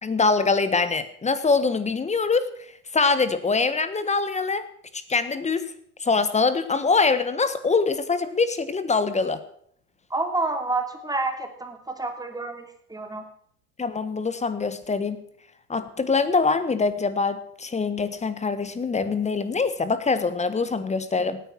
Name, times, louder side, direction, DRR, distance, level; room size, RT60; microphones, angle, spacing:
voice 1, 0.0-2.5 2.9-4.6 4.9-5.7 6.0-9.4 13.8-15.2 15.7-21.4, left 4 dB, 15° left, 13 dB, 1.3 m, -24 dB
voice 2, 10.1-13.3, right 3 dB, 10° right, 5 dB, 2.8 m, -29 dB
17.5 x 9.7 x 6.2 m, 0.64 s
hypercardioid pair, 90°, 48 cm